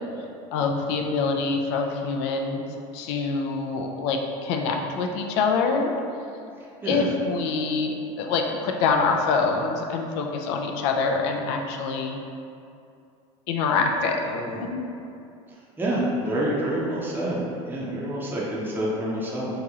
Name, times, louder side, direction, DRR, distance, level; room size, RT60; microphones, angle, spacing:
voice 1, 0.5-2.6 2.9-5.9 6.8-12.2 13.5-14.9, left 4 dB, 75° left, 3 dB, 0.4 m, -25 dB
voice 2, 15.8-17.4 17.7-19.5, right 1 dB, 15° right, -6 dB, 0.6 m, -27 dB
2.9 x 2.8 x 3.6 m, 2.5 s
supercardioid pair, 110°, 15 cm